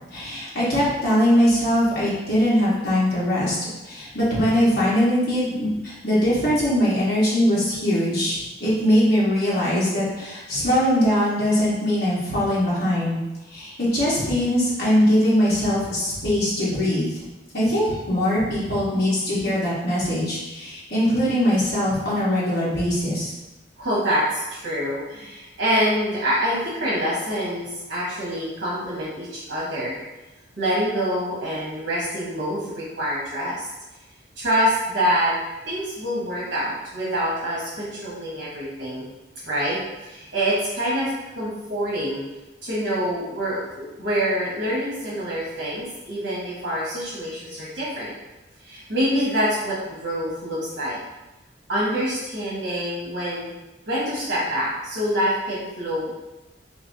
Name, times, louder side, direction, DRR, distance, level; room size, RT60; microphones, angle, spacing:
voice 1, 0.1-3.6 3.8-13.2 13.5-17.2 17.5-23.3, equal, 55° left, -9 dB, 1.3 m, -21 dB
voice 2, 23.8-30.0 30.6-33.6 34.4-35.3 35.6-39.1 39.5-42.2 42.6-48.1 48.6-51.0 51.7-53.5 53.9-56.2, equal, 70° right, -8 dB, 1.1 m, -26 dB
3.8 x 3.2 x 2.7 m, 1.0 s
head